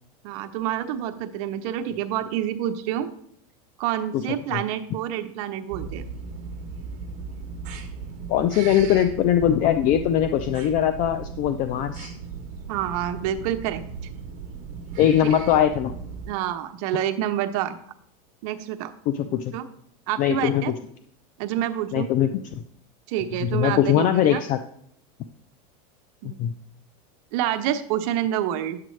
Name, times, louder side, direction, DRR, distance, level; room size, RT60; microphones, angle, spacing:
voice 1, 0.2-3.1 3.8-6.0 12.7-13.8 15.2-15.3 16.3-17.8 18.4-18.9 19.3-19.7 20.1-20.7 21.4-22.1 23.1-24.4 26.2-26.4 27.3-28.8, right 11 dB, 60° right, 8 dB, 0.9 m, -28 dB
sound 1, 5.7-16.3, right 5 dB, 40° right, 1.2 m, -37 dB
voice 2, 8.3-12.1 15.0-15.9 19.1-19.5 20.2-20.6 21.9-22.4 23.4-24.6 26.2-26.5, left 10 dB, 40° left, 10 dB, 0.5 m, -21 dB
10.0 x 7.6 x 3.2 m, 0.68 s
supercardioid pair, 140°, 20 cm